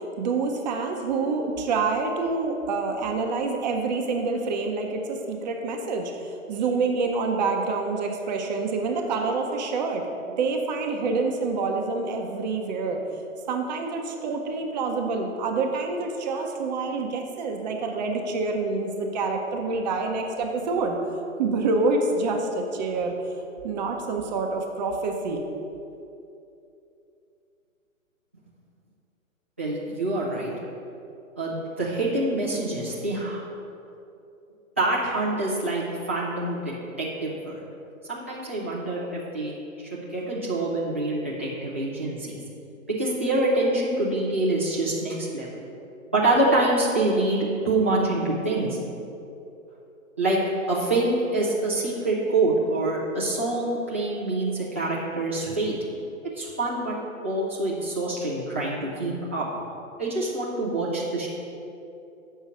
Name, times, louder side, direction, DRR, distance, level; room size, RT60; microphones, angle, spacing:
voice 1, 0.0-6.1 6.5-10.0 10.4-13.0 13.5-21.0 21.4-23.1 23.6-25.4, right 3 dB, 30° right, 3 dB, 0.7 m, -27 dB
voice 2, 29.6-30.5 31.4-33.4 34.8-37.6 38.1-42.4 42.9-45.5 46.1-48.8 50.2-50.4 50.7-55.7 56.4-57.0 57.2-59.4 60.0-61.3, right 2 dB, 10° right, -8 dB, 0.3 m, -26 dB
6.8 x 5.5 x 6.2 m, 2.7 s
hypercardioid pair, 130°, 41 cm